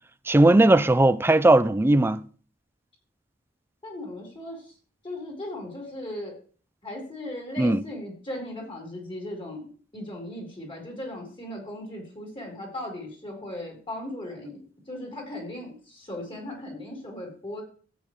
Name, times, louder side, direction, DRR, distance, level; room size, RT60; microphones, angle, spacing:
voice 1, 0.3-2.2 7.6-7.8, right 2 dB, 10° right, 0.4 m, -18 dB
voice 2, 3.8-4.6 5.0-6.4 6.8-14.6 14.9-17.6, left 1 dB, 30° left, 4.1 m, -37 dB
14.0 x 8.7 x 3.2 m
head